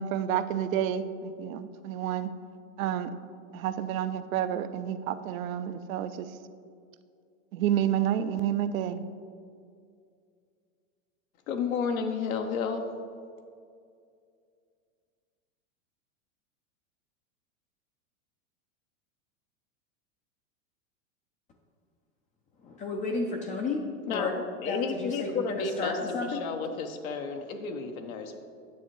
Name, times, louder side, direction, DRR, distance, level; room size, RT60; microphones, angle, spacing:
voice 1, 0.0-2.3 2.8-3.1 3.5-6.3 7.5-9.0, right 10 dB, 75° right, 11 dB, 0.5 m, -29 dB
voice 2, 11.5-12.8 24.1-28.4, left 5 dB, 80° left, 5 dB, 0.9 m, -32 dB
voice 3, 22.8-23.8 24.1-24.3 24.7-25.3 25.6-26.4, left 3 dB, 20° left, 2 dB, 0.3 m, -32 dB
9.3 x 6.6 x 3.0 m, 2.3 s
supercardioid pair, 125°, 41 cm